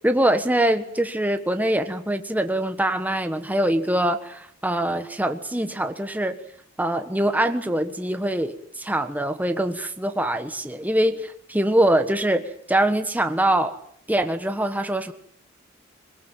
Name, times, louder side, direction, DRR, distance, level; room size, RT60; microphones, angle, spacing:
voice 1, 0.0-6.3 6.8-12.4 12.7-13.8 14.1-15.1, right 1 dB, 10° right, 7 dB, 1.3 m, -23 dB
22.5 x 20.0 x 9.1 m, 0.65 s
head